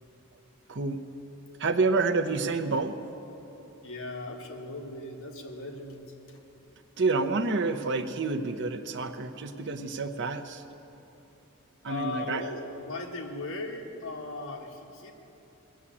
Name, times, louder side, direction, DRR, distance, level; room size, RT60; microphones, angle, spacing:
voice 1, 0.7-1.0 1.6-3.0 7.0-10.6 11.8-12.4, right 3 dB, 55° right, 8 dB, 0.7 m, -28 dB
voice 2, 3.8-6.4 11.8-15.2, left 2 dB, 65° left, 1 dB, 1.7 m, -38 dB
19.5 x 7.2 x 8.5 m, 3.0 s
head